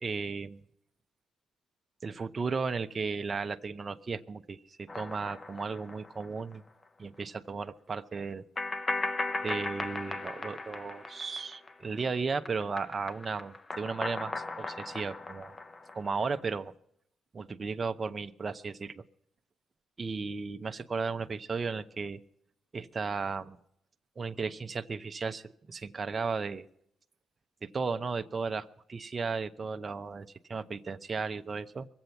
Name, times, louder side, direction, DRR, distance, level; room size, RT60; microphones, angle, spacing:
voice 1, 0.0-0.6 2.0-6.6 7.0-8.5 9.4-15.5 15.9-16.7 17.3-19.0 20.0-22.2 22.7-23.6 24.2-26.7 27.6-31.9, right 4 dB, 35° right, 7 dB, 0.7 m, -35 dB
sound 1, 4.9-6.5 6.8-6.9 8.6-12.0 12.3-16.5, left 3 dB, 30° left, 0.8 m, -37 dB
22.5 x 7.9 x 5.8 m, 0.72 s
cardioid pair, 90°, 0 cm